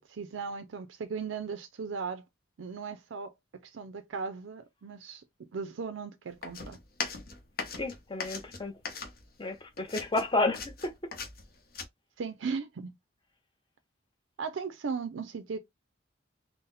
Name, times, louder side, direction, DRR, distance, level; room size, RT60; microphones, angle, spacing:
voice 1, 0.0-2.2 2.6-3.3 3.6-5.2 5.5-6.8 12.2-12.9 14.4-15.6, right 5 dB, 85° right, 0.5 m, -37 dB
sound 1, 6.4-9.5 9.8-11.8, left 4 dB, 50° left, 1.0 m, -39 dB
voice 2, 7.8-8.7 9.4-10.9, left 2 dB, 25° left, 0.7 m, -31 dB
4.1 x 2.1 x 3.9 m
head